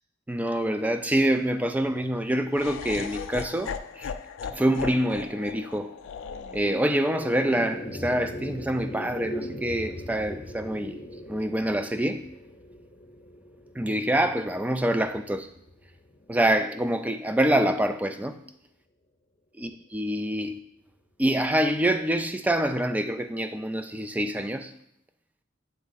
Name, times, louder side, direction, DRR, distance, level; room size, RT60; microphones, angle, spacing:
voice 1, 0.3-4.1 4.5-5.9 6.5-11.0 11.3-12.2 13.8-15.5 16.3-18.4 19.6-20.6 21.2-24.7, right 1 dB, 10° right, 0.3 m, -26 dB
Laughter, 2.5-8.7, left 6 dB, 70° left, 0.3 m, -38 dB
sound 1, 6.3-16.8, equal, 35° left, 0.7 m, -40 dB
8.1 x 3.2 x 3.9 m
head